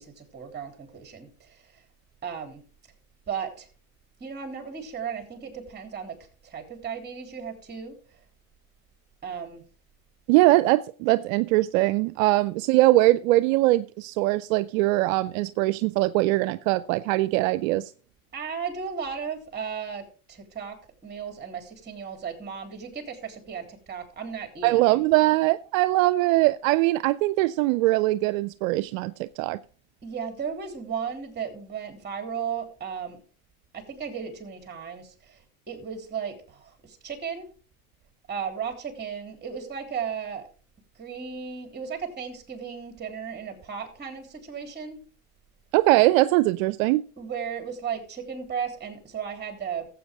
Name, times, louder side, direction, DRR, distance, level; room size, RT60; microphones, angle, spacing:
voice 1, 0.0-1.8 2.2-2.6 3.3-3.7 4.2-6.2 6.4-8.2 9.2-9.6 18.3-20.8 21.0-25.0 30.0-33.2 33.7-35.4 35.7-37.5 38.3-40.5 40.9-45.0 47.2-49.9, right 7 dB, 25° right, 3.4 m, -35 dB
voice 2, 10.3-17.9 24.6-29.6 45.7-47.1, right 18 dB, 70° right, 0.6 m, -22 dB
14.5 x 7.9 x 3.5 m
supercardioid pair, 100°, 42 cm